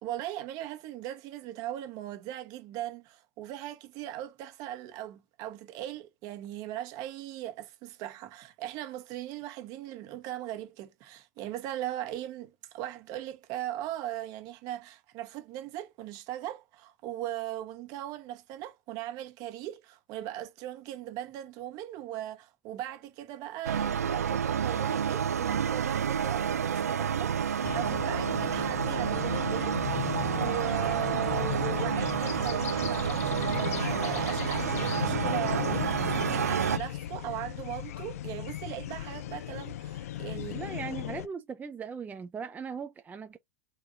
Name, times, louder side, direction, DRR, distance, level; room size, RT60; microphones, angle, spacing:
voice 1, 0.0-40.6, right 13 dB, 50° right, 1.3 m, -39 dB
sound 1, 23.6-36.8, right 7 dB, 90° right, 0.3 m, -29 dB
sound 2, 27.6-41.3, left 13 dB, 70° left, 0.4 m, -36 dB
voice 2, 40.5-43.4, right 6 dB, 20° right, 0.6 m, -39 dB
4.4 x 3.6 x 2.8 m
hypercardioid pair, 95°, 8 cm